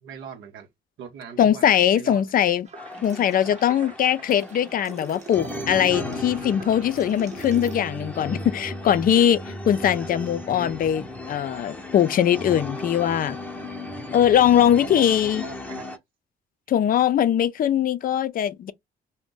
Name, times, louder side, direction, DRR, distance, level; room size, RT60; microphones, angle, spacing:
voice 1, 0.0-0.7 1.0-2.2 14.5-15.8, right 7 dB, 80° right, 0.7 m, -40 dB
voice 2, 1.4-2.7 3.0-13.4 14.1-15.4 16.7-18.7, left 10 dB, 45° left, 0.4 m, -21 dB
sound 1, 2.7-7.8, right 4 dB, 35° right, 0.8 m, -43 dB
sound 2, 2.8-16.0, left 1 dB, 5° left, 0.8 m, -36 dB
2.5 x 2.1 x 3.7 m
cardioid pair, 90°, 20 cm